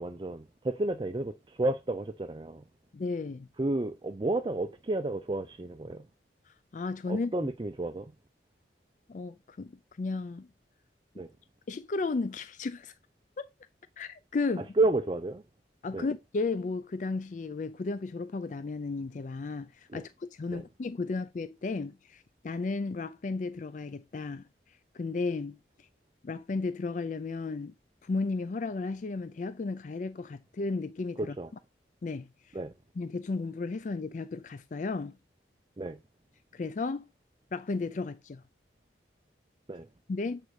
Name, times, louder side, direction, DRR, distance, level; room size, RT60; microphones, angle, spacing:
voice 1, 0.0-2.6 3.6-6.1 7.1-8.1 11.2-11.3 14.8-15.4 15.9-16.1 19.9-20.0 20.5-20.6 31.2-31.5 32.5-32.7 35.8-36.0 39.7-39.9, right 2 dB, 25° right, 0.4 m, -31 dB
voice 2, 2.9-3.5 6.5-7.3 9.1-10.5 11.7-12.9 13.4-13.5 14.0-14.7 15.8-25.9 26.2-27.7 28.0-31.4 32.0-32.6 33.0-35.2 36.5-37.1 37.5-38.4 40.1-40.4, left 3 dB, 45° left, 0.4 m, -34 dB
7.9 x 3.8 x 4.8 m
head